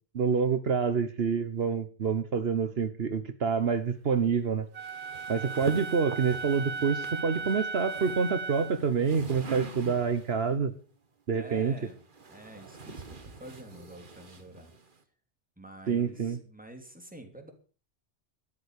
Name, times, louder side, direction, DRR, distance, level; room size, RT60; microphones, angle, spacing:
voice 1, 0.1-4.7 5.3-10.7 11.3-11.7 15.9-16.4, right 6 dB, 65° right, 10 dB, 1.3 m, -27 dB
Wind instrument woodwind instrument, 4.7-8.8, right 4 dB, 85° right, 1.3 m, -37 dB
sound 1, 4.8-10.4 11.5-15.0, right 4 dB, 50° right, 1.6 m, -44 dB
voice 2, 11.3-12.0 12.3-14.7 15.6-17.5, right 1 dB, 5° right, 4 dB, 3.1 m, -48 dB
13.0 x 11.5 x 6.6 m, 0.38 s
omnidirectional pair, 1.1 m